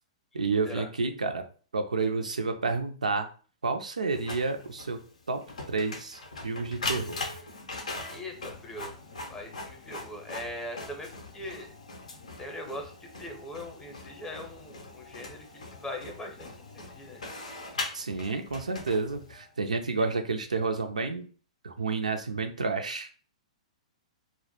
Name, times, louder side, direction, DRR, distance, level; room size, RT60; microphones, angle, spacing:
voice 1, 0.3-1.4 1.7-3.3 3.6-5.0 5.3-5.4 5.7-7.2 17.9-21.2 21.6-23.1, right 4 dB, 85° right, 7 dB, 0.3 m, -30 dB
Printer, 4.1-19.5, left 3 dB, 75° left, 0.5 m, -41 dB
voice 2, 8.1-8.9 9.3-11.1 11.3-11.7 12.4-12.9 13.2-16.5 16.7-17.2, left 1 dB, 15° left, 2 dB, 0.6 m, -40 dB
2.1 x 2.0 x 2.9 m, 0.40 s
figure-of-eight pair, 115°, 4 cm